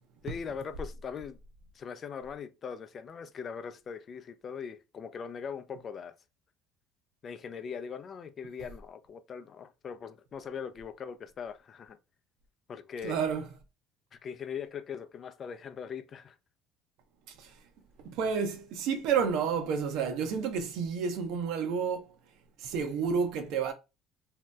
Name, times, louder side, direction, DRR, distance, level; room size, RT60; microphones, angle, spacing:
voice 1, 0.2-1.4 1.7-6.1 7.2-12.0 12.7-13.2 14.1-16.4, left 6 dB, 40° left, 0.4 m, -41 dB
voice 2, 13.0-13.5 17.3-17.6 18.0-22.1 22.6-23.7, right 6 dB, 70° right, 0.6 m, -30 dB
2.7 x 2.0 x 3.3 m
supercardioid pair, 90°, 0 cm